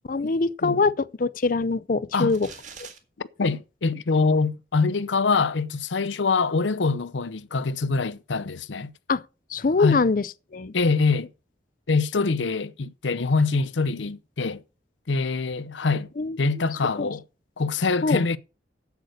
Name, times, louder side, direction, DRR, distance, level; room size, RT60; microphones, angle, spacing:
voice 1, 0.1-2.5 2.8-2.9 9.1-9.2 9.5-10.7 16.2-16.7 17.0-17.1 18.0-18.2, left 4 dB, 50° left, 0.5 m, -24 dB
sound 1, 2.3-3.0, right 6 dB, 45° right, 2.0 m, -43 dB
voice 2, 3.2-8.9 9.8-10.0 10.7-11.3 11.9-14.6 15.1-16.1 16.4-17.2 17.6-18.4, left 4 dB, 90° left, 0.7 m, -24 dB
8.3 x 8.1 x 6.4 m
head